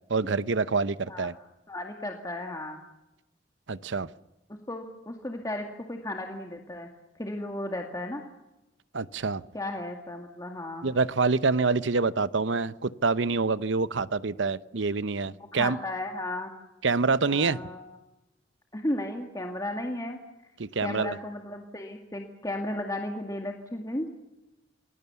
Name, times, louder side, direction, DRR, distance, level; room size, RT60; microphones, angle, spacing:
voice 1, 0.1-1.3 3.7-4.1 8.9-9.4 10.8-15.8 16.8-17.6 20.6-21.2, right 4 dB, 85° right, 15 dB, 0.8 m, -26 dB
voice 2, 1.7-2.8 4.7-6.9 7.2-8.2 9.5-10.9 15.3-16.5 17.3-17.8 18.7-20.2 20.8-24.1, left 1 dB, 20° left, 2 dB, 2.1 m, -34 dB
28.5 x 22.0 x 7.1 m, 0.98 s
head